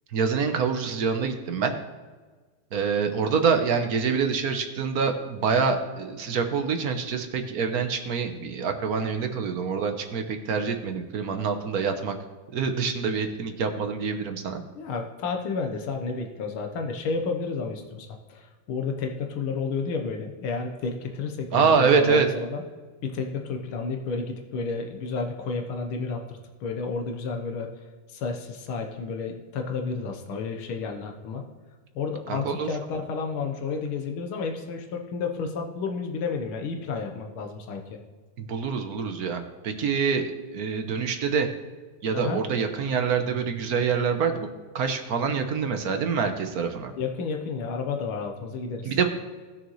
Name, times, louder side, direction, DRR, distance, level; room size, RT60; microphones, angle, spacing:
voice 1, 0.1-1.7 2.7-12.1 12.5-14.6 21.5-22.3 32.3-32.7 38.4-40.2 40.5-41.5 42.0-44.5 44.7-46.9 48.8-49.1, right 5 dB, 55° right, 6 dB, 1.2 m, -25 dB
voice 2, 14.8-22.6 23.0-27.7 28.1-31.4 32.0-38.0 42.1-42.4 47.0-49.0, left 4 dB, 85° left, 3 dB, 1.9 m, -31 dB
18.5 x 6.6 x 3.1 m, 1.4 s
omnidirectional pair, 2.3 m